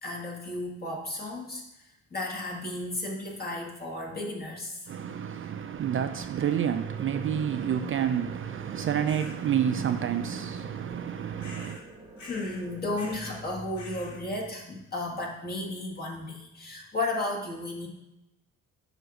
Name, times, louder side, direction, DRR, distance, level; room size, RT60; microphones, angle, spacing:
voice 1, 0.0-4.9 12.2-17.9, left 2 dB, 30° left, 1.7 m, -34 dB
voice 2, 4.9-11.8, right 8 dB, 45° right, 0.4 m, -29 dB
sound 1, 6.3-13.5, right 2 dB, 15° right, 1.1 m, -48 dB
sound 2, 9.1-9.4 11.4-11.9 12.2-12.6 12.9-13.4 13.8-14.2, left 3 dB, 70° left, 1.4 m, -46 dB
7.7 x 2.6 x 5.9 m
cardioid pair, 90°, 30 cm